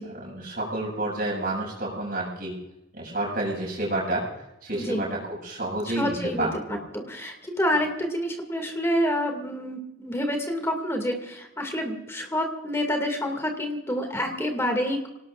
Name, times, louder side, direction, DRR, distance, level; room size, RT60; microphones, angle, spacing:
voice 1, 0.0-2.5 2.9-4.2 4.6-6.8, right 2 dB, 45° right, -2 dB, 7.2 m, -30 dB
voice 2, 4.7-5.1 6.0-15.1, equal, 15° left, 4 dB, 2.3 m, -28 dB
27.5 x 18.5 x 2.5 m, 0.91 s
head